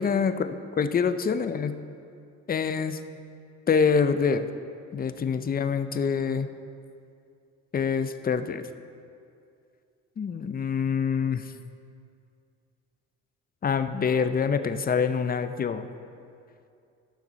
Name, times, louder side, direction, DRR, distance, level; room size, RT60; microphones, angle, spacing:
voice 1, 0.0-1.8 2.5-3.0 3.7-4.5 4.9-6.5 7.7-8.6 10.2-11.4 13.6-15.9, left 6 dB, 30° left, 10 dB, 0.5 m, -25 dB
15.0 x 5.9 x 4.1 m, 2.5 s
cardioid pair, 90°, 30 cm